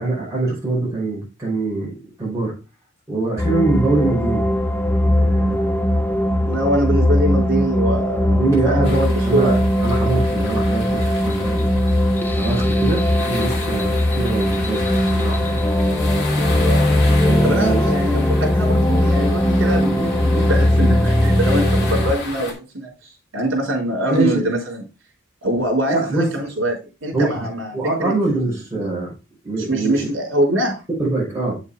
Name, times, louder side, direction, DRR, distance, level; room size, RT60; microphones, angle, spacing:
voice 1, 0.0-2.6 3.1-4.5 5.0-5.8 8.2-11.8 12.3-14.9 15.2-15.6 17.2-17.9 24.1-24.5 25.9-26.3 27.1-27.5 27.7-29.1 29.4-30.1 30.9-31.6, right 2 dB, 15° right, -6 dB, 4.7 m, -23 dB
sound 1, 3.4-22.1, left 1 dB, 10° left, 0.6 m, -19 dB
voice 2, 6.4-9.6 16.6-16.8 17.4-24.8 25.4-28.1 29.7-30.8, right 1 dB, 70° right, 1 dB, 3.9 m, -23 dB
sound 2, 8.8-22.5, left 3 dB, 60° left, 3.3 m, -33 dB
8.5 x 7.2 x 3.4 m, 0.29 s
head